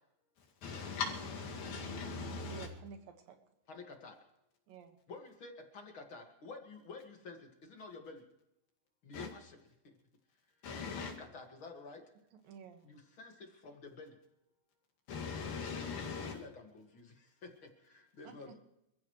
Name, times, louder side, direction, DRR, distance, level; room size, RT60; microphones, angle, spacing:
voice 1, 0.6-2.7 9.1-9.3 10.6-11.1 15.1-16.4, left 5 dB, 85° left, 4.1 m, -40 dB
voice 2, 2.5-3.4 4.7-5.0 12.4-12.8 18.2-18.6, right 6 dB, 70° right, 3.2 m, -51 dB
voice 3, 3.7-4.2 5.1-8.2 9.0-9.9 10.9-12.0 12.8-14.1 16.2-18.6, left 3 dB, 40° left, 2.1 m, -51 dB
27.5 x 15.0 x 3.2 m
omnidirectional pair, 4.2 m